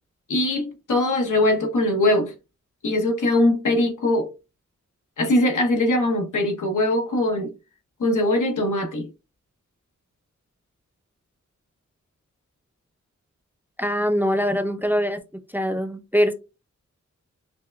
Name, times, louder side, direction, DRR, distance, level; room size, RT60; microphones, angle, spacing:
voice 1, 0.3-2.3 2.8-4.3 5.2-7.5 8.0-9.1, left 1 dB, 90° left, 1.0 m, -21 dB
voice 2, 13.8-15.2 15.5-16.3, equal, 5° right, 0.5 m, -23 dB
5.6 x 2.2 x 2.2 m
wide cardioid pair, 85°, 30 cm